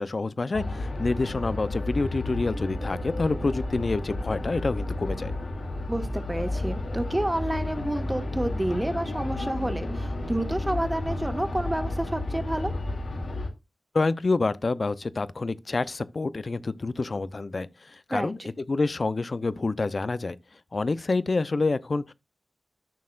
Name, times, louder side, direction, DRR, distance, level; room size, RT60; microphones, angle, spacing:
voice 1, 0.0-5.3 13.9-18.4 18.7-20.4 20.7-22.1, left 3 dB, 50° left, 0.7 m, -27 dB
sound 1, 0.5-13.5, left 2 dB, 75° left, 2.7 m, -32 dB
voice 2, 5.9-12.7 18.1-18.5, right 1 dB, 15° right, 1.7 m, -29 dB
13.0 x 6.5 x 2.5 m
wide cardioid pair, 85°, 0 cm